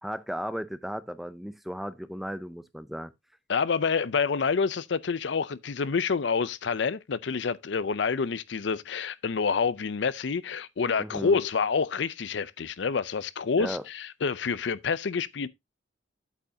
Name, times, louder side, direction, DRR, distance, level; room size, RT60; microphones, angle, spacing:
voice 1, 0.0-3.1 11.0-11.4 13.6-13.8, equal, ahead, 0.5 m, -35 dB
voice 2, 3.5-15.5, left 5 dB, 70° left, 0.5 m, -28 dB
8.5 x 7.9 x 2.7 m
head